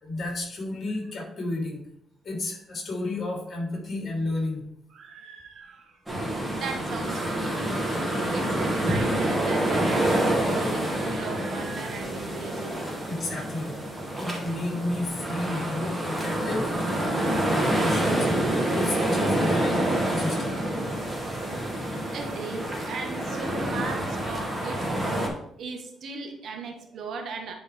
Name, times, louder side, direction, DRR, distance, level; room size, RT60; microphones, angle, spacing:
voice 1, 0.0-1.8 2.2-4.6 13.1-13.7 14.2-16.7 17.3-19.8 20.0-20.6, left 2 dB, 40° left, -1 dB, 3.3 m, -32 dB
voice 2, 4.9-13.1 14.7-15.0 22.1-25.3 25.6-27.5, right 4 dB, 65° right, 4 dB, 1.3 m, -38 dB
sound 1, 6.1-25.3, right 1 dB, 15° right, 2.2 m, -27 dB
10.0 x 4.6 x 3.5 m, 0.73 s
cardioid pair, 90°, 0 cm